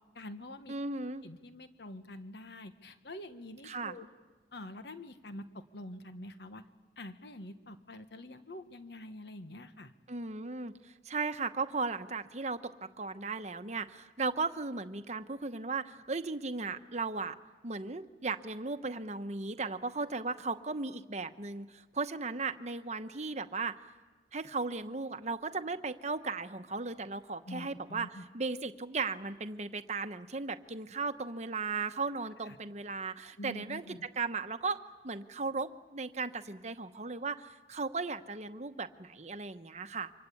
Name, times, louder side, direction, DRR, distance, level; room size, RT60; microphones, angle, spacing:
voice 1, 0.1-0.8 1.2-4.1 4.5-6.6 7.0-9.9 27.5-28.2 32.5-32.6 33.4-34.1, left 1 dB, 65° left, 9 dB, 1.3 m, -46 dB
voice 2, 0.7-1.2 3.6-4.0 10.1-17.4 17.6-23.7 24.3-40.1, right 4 dB, 40° right, 9 dB, 1.0 m, -36 dB
28.0 x 25.0 x 8.5 m, 1.3 s
head